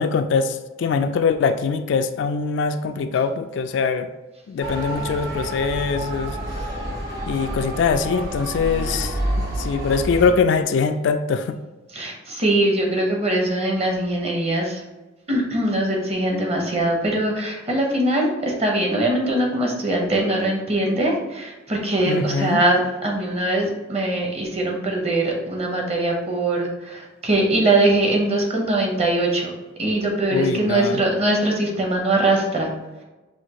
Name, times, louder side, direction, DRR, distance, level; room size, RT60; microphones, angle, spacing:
voice 1, 0.0-4.1 4.5-6.4 7.3-9.1 9.6-11.6 22.1-22.6 30.3-31.0, left 5 dB, 65° left, 9 dB, 0.3 m, -22 dB
Motor vehicle (road) / Siren, 4.6-10.3, right 1 dB, 55° right, 1.3 m, -28 dB
voice 2, 11.9-14.8 15.3-29.5 29.8-32.7, right 1 dB, 35° right, 0 dB, 0.8 m, -22 dB
5.8 x 2.6 x 2.9 m, 1.1 s
head